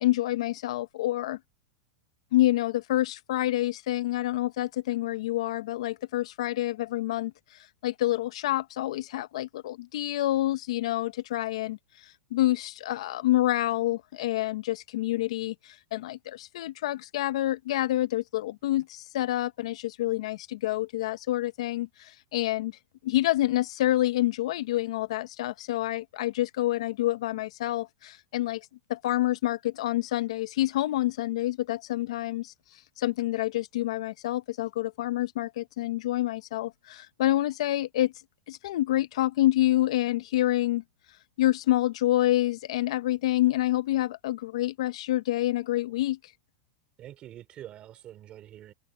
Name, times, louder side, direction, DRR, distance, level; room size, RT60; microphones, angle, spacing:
voice 1, 0.0-1.4 2.3-22.7 23.0-32.5 33.0-38.1 38.5-40.8 41.4-46.2, left 15 dB, 70° left, 1.0 m, -27 dB
voice 2, 47.0-48.7, right 12 dB, 35° right, 3.2 m, -45 dB
hypercardioid pair, 125°, 3 cm